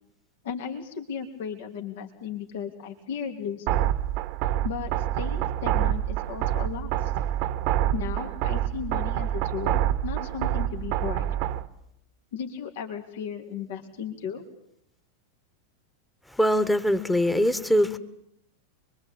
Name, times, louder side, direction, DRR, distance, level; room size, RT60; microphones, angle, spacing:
voice 1, 0.4-3.9 4.6-7.1 7.9-11.3 12.3-14.4, left 7 dB, 55° left, 5 dB, 3.2 m, -35 dB
sound 1, 3.7-11.7, right 12 dB, 45° right, 1.3 m, -27 dB
voice 2, 16.3-18.0, equal, 5° left, 13 dB, 1.8 m, -22 dB
28.0 x 23.0 x 9.0 m, 0.76 s
figure-of-eight pair, 90°, 0 cm